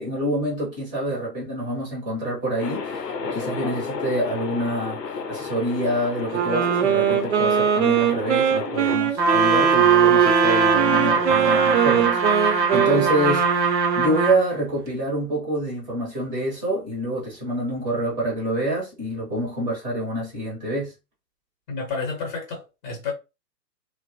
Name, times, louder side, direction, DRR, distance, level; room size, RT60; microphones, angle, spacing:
voice 1, 0.0-5.0 5.3-13.7 14.0-20.9, right 1 dB, 10° right, 0.7 m, -27 dB
sound 1, 2.6-9.0, left 5 dB, 80° left, 0.7 m, -32 dB
Wind instrument woodwind instrument, 6.3-14.5, right 8 dB, 45° right, 0.6 m, -21 dB
Trumpet, 9.2-14.4, right 5 dB, 85° right, 0.8 m, -21 dB
voice 2, 21.7-23.1, left 4 dB, 30° left, 0.8 m, -30 dB
2.9 x 2.1 x 2.7 m
figure-of-eight pair, 120°, 50 cm